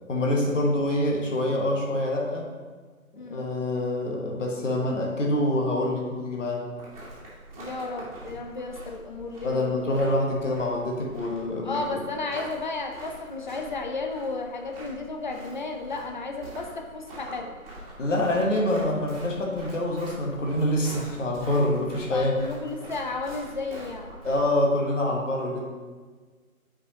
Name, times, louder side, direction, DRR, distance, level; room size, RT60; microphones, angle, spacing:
voice 1, 0.1-2.5 3.3-6.7 9.4-12.0 18.0-22.4 24.2-25.6, left 1 dB, 60° left, 0 dB, 1.3 m, -26 dB
sound 1, 6.7-24.4, right 1 dB, 25° right, 1.7 m, -44 dB
voice 2, 7.6-10.0 11.6-17.6 22.1-24.1, left 3 dB, 35° left, 3 dB, 0.6 m, -33 dB
8.0 x 5.1 x 2.9 m, 1.4 s
figure-of-eight pair, 135°, 43 cm